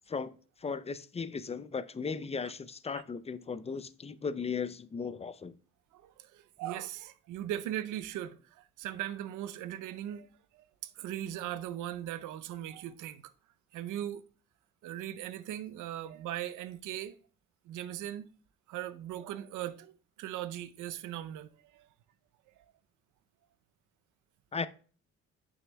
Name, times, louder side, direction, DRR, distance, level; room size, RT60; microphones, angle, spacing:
voice 1, 0.1-5.5 24.5-24.7, left 5 dB, 20° left, 0.5 m, -37 dB
voice 2, 5.9-10.3 10.5-13.2 13.7-14.2 14.8-17.2 17.6-18.2 18.7-21.9, right 12 dB, 90° right, 0.6 m, -39 dB
8.9 x 6.5 x 2.2 m
cardioid pair, 90°, 30 cm